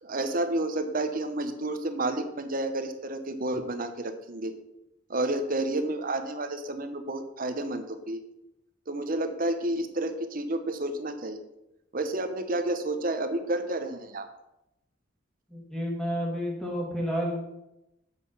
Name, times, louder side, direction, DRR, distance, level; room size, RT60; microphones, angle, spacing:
voice 1, 0.0-4.5 5.1-8.2 8.9-11.4 11.9-14.3, right 1 dB, 45° right, 8 dB, 0.9 m, -30 dB
voice 2, 15.5-17.4, equal, 5° left, -2 dB, 2.2 m, -30 dB
7.9 x 6.6 x 5.5 m, 0.89 s
head